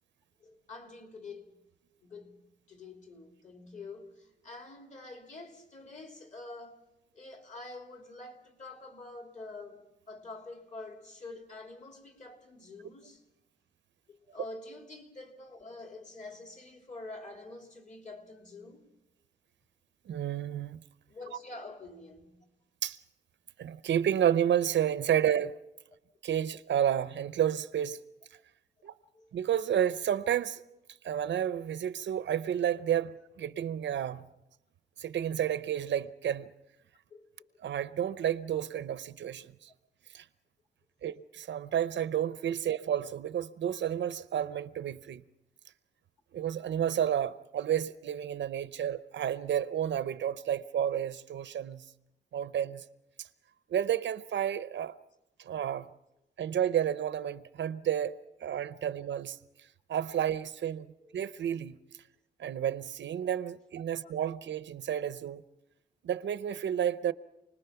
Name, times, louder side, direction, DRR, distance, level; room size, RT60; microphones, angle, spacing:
voice 1, 0.4-1.6 2.0-2.4 2.7-6.8 7.1-13.2 14.1-18.8 21.1-22.4 29.1-29.3 37.1-37.2 61.0-61.1 64.0-64.1, left 2 dB, 40° left, 3.2 m, -47 dB
voice 2, 20.1-20.8 22.8-23.0 23.6-25.6 26.2-28.0 28.8-28.9 29.3-30.6 31.0-34.3 35.0-36.5 37.6-39.7 40.1-40.2 41.0-45.2 46.3-51.8 52.3-52.8 53.2-53.3 53.7-54.9 55.4-55.9 56.4-59.4 59.9-61.8 62.4-65.4 66.0-67.1, right 10 dB, 85° right, 0.7 m, -31 dB
29.0 x 20.0 x 5.9 m
wide cardioid pair, 135°, 18 cm